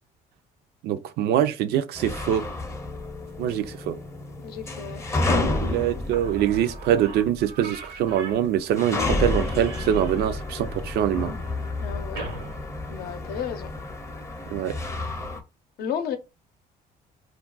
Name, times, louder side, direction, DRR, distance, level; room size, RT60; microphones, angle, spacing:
voice 1, 0.8-2.4 3.4-4.0 5.3-11.3 14.5-14.7, right 10 dB, 70° right, 0.4 m, -24 dB
sound 1, 1.9-7.5 7.7-7.8 8.6-15.4, left 2 dB, 15° left, 0.6 m, -30 dB
voice 2, 4.4-5.0 5.5-5.6 11.8-12.2 12.9-13.7 15.8-16.2, left 8 dB, 70° left, 0.6 m, -32 dB
Slam / Squeak, 6.1-13.6, right 3 dB, 90° right, 0.9 m, -42 dB
2.3 x 2.2 x 3.8 m
cardioid pair, 110°, 17 cm